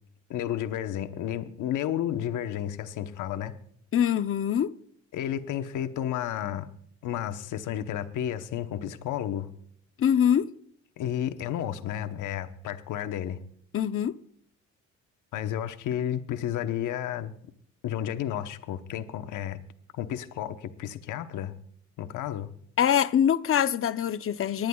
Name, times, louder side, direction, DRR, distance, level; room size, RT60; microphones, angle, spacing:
voice 1, 0.3-3.5 5.1-6.7 7.0-9.5 11.0-13.4 15.3-17.3 17.8-19.6 19.9-21.6 22.0-22.5, left 11 dB, 85° left, 1.1 m, -32 dB
voice 2, 3.9-4.8 10.0-10.5 13.7-14.2 22.8-24.7, left 9 dB, 45° left, 0.7 m, -24 dB
24.5 x 10.5 x 2.3 m
cardioid pair, 90°, 30 cm